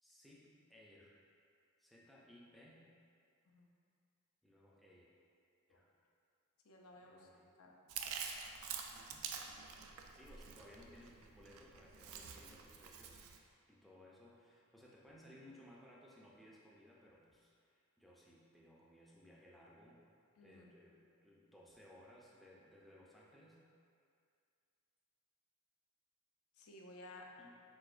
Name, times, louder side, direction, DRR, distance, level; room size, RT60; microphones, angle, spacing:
voice 1, 0.0-1.2 1.8-2.8 4.4-5.1 5.7-5.9 7.0-7.5 8.9-9.3 10.1-13.2 13.6-20.0 20.4-23.6 27.4-27.6, left 1 dB, ahead, -6 dB, 0.4 m, -61 dB
voice 2, 6.6-7.3 7.6-7.7 20.4-20.7 26.6-27.3, left 2 dB, 80° left, 0 dB, 0.6 m, -56 dB
Chewing mastication, 7.9-13.4, right 6 dB, 70° right, 0.4 m, -47 dB
4.8 x 4.1 x 2.5 m, 2.3 s
head